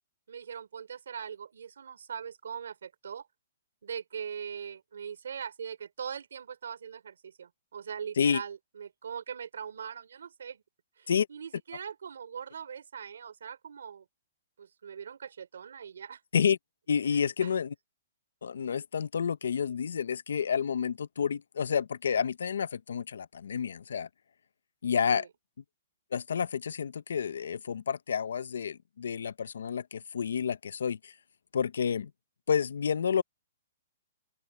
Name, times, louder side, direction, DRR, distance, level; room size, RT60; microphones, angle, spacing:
voice 1, 0.3-3.3 3.8-10.6 11.0-14.0 14.6-16.2 17.1-17.5 25.1-25.3, right 7 dB, 90° right, 3.0 m, -41 dB
voice 2, 16.9-17.7 18.4-24.1 24.8-25.3 26.1-31.1 31.5-32.1 32.5-33.2, left 7 dB, 90° left, 0.6 m, -29 dB
open air
hypercardioid pair, 175°, 0 cm